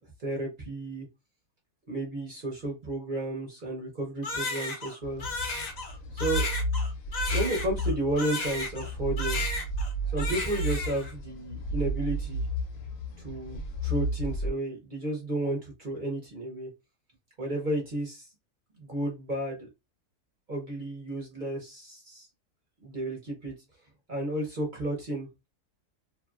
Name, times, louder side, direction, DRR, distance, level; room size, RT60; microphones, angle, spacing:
voice 1, 0.2-1.1 1.9-5.2 6.1-6.5 7.3-9.4 10.1-12.5 13.2-16.7 17.4-18.3 18.8-19.7 20.5-22.3 22.8-23.5 24.1-25.3, right 1 dB, 40° right, -1 dB, 0.8 m, -32 dB
Crying sobbing, 4.2-8.9 9.2-9.9 10.2-11.1, left 3 dB, 90° left, 0.3 m, -34 dB
sound 1, 5.0-14.5, right 1 dB, 75° left, 1.1 m, -32 dB
2.7 x 2.5 x 2.3 m, 0.24 s
omnidirectional pair, 1.7 m